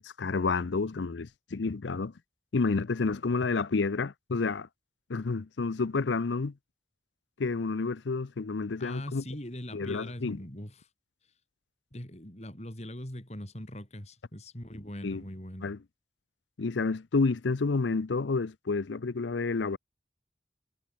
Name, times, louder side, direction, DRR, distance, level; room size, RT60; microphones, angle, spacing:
voice 1, 0.0-2.1 2.5-4.7 5.1-6.5 7.4-9.2 9.7-10.4 15.0-15.2 15.6-15.8 16.6-19.8, left 4 dB, 80° left, 0.6 m, -29 dB
voice 2, 8.8-10.9 11.9-15.7, left 1 dB, 35° left, 3.6 m, -41 dB
head